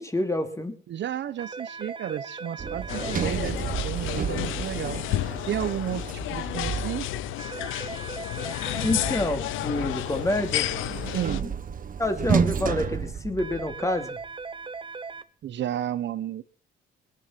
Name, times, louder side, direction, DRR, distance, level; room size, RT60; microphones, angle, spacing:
voice 1, 0.0-0.8 8.8-10.7 12.0-14.2, left 1 dB, 15° left, 6 dB, 3.1 m, -28 dB
voice 2, 0.9-5.0 5.5-7.1 11.1-11.4 15.4-16.4, right 11 dB, 65° right, 14 dB, 1.0 m, -32 dB
sound 1, 1.4-3.2 7.4-9.2 13.4-15.2, right 4 dB, 25° right, 1.1 m, -38 dB
Sliding door, 2.6-7.4 9.0-14.0, right 7 dB, 45° right, 1.4 m, -31 dB
sound 2, 2.9-11.4, left 15 dB, 90° left, 0.7 m, -31 dB
21.5 x 11.0 x 6.0 m, 0.42 s
cardioid pair, 90°, 20 cm